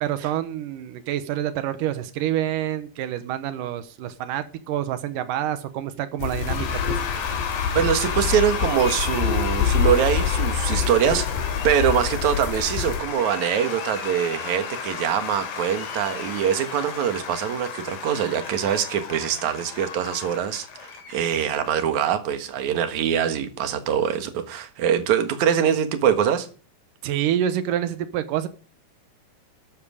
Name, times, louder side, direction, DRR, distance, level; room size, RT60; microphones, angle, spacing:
voice 1, 0.0-7.0 27.0-28.5, right 11 dB, 90° right, 1.8 m, -27 dB
sound 1, 6.2-13.0, left 7 dB, 75° left, 3.9 m, -26 dB
Cheering / Applause / Crowd, 6.3-22.0, left 7 dB, 90° left, 5.3 m, -33 dB
voice 2, 7.7-11.3 11.6-26.5, right 9 dB, 60° right, 2.1 m, -23 dB
13.0 x 12.0 x 5.0 m
omnidirectional pair, 5.2 m